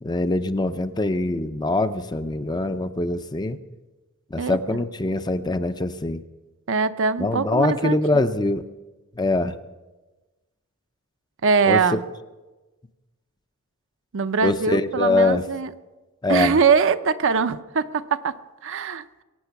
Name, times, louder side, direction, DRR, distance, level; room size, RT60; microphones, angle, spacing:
voice 1, 0.0-3.6 4.3-6.2 7.2-8.6 9.2-9.6 11.7-12.0 14.4-15.4 16.2-16.6, left 2 dB, 20° left, 9 dB, 0.5 m, -23 dB
voice 2, 4.4-4.8 6.7-8.0 11.4-12.0 14.1-15.7 16.3-19.2, right 5 dB, 60° right, 10 dB, 0.6 m, -22 dB
22.5 x 9.0 x 5.9 m, 1.2 s
head